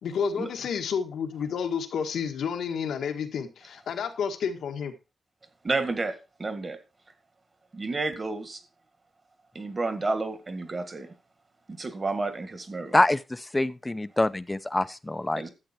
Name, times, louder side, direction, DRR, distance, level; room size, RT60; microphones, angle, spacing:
voice 1, 0.0-4.9, left 6 dB, 90° left, 1.7 m, -30 dB
voice 2, 5.6-6.8 7.7-8.6 9.6-11.1 11.8-13.0 15.4-15.5, right 3 dB, 30° right, 1.8 m, -31 dB
voice 3, 12.9-15.4, left 2 dB, 15° left, 0.6 m, -25 dB
12.0 x 7.8 x 4.4 m
wide cardioid pair, 120°, 0 cm